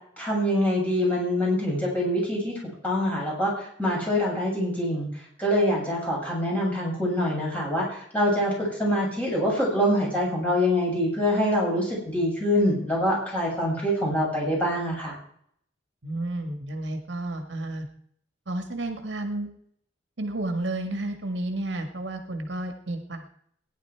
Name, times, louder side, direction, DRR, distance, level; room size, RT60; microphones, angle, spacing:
voice 1, 0.2-2.5 2.8-5.1 5.4-15.2, equal, 10° left, -4 dB, 7.3 m, -25 dB
voice 2, 16.0-17.9 18.5-19.5 20.2-23.2, right 2 dB, 65° right, 6 dB, 1.9 m, -31 dB
18.5 x 11.0 x 4.7 m, 0.65 s
head